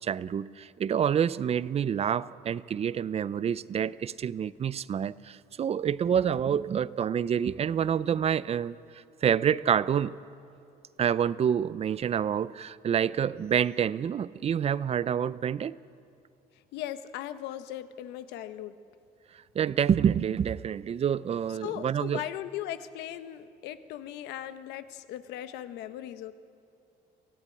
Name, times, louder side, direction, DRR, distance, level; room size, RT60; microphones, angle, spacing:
voice 1, 0.0-8.8 9.2-10.2 11.0-15.8 19.5-22.2, right 8 dB, 35° right, 19 dB, 0.5 m, -27 dB
voice 2, 16.7-18.7 21.6-26.3, left 12 dB, 90° left, 11 dB, 1.1 m, -38 dB
23.5 x 15.0 x 9.8 m, 2.7 s
cardioid pair, 110°, 17 cm